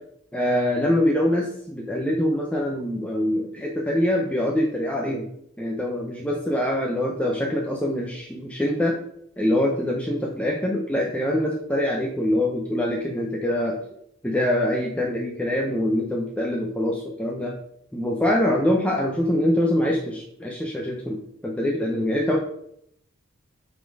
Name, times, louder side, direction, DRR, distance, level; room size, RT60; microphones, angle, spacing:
voice 1, 0.3-5.3 5.6-8.9 9.4-13.8 14.2-17.5 17.9-21.2 21.4-22.4, left 1 dB, 5° left, -1 dB, 0.8 m, -24 dB
8.7 x 4.3 x 4.8 m, 0.72 s
head